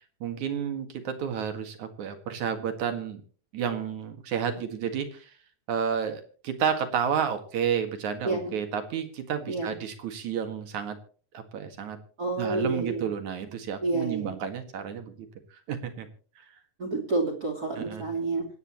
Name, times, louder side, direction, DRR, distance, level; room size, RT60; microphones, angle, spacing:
voice 1, 0.2-3.2 3.5-5.3 5.7-11.0 11.3-12.0 12.4-16.1 16.4-16.5 17.8-18.0, right 7 dB, 65° right, 7 dB, 3.2 m, -31 dB
voice 2, 8.2-8.5 9.5-9.8 12.2-13.0 13.8-14.4 16.8-18.5, right 3 dB, 30° right, 0 dB, 2.7 m, -29 dB
26.0 x 9.5 x 3.0 m, 0.41 s
omnidirectional pair, 3.7 m